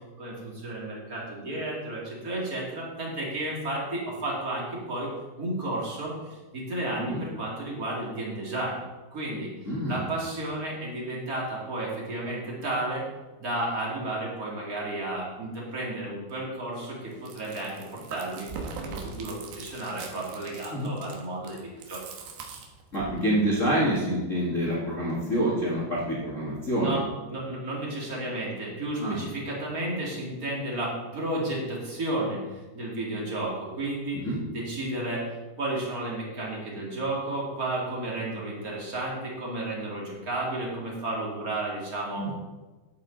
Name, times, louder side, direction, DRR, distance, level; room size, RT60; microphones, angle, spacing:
voice 1, 0.2-5.1 5.4-8.8 9.1-9.5 9.9-13.0 13.4-18.5 18.8-22.0 26.8-27.0 27.3-34.2 34.5-35.3 35.6-42.3, right 1 dB, 30° right, -4 dB, 1.8 m, -32 dB
voice 2, 9.6-10.0 20.7-20.9 22.9-27.0 29.0-29.2 34.1-34.4 42.1-42.3, right 1 dB, 85° left, -5 dB, 0.6 m, -27 dB
Chewing mastication, 17.1-23.2, right 5 dB, 75° right, 3.1 m, -41 dB
11.0 x 8.5 x 3.9 m, 1.2 s
omnidirectional pair, 4.8 m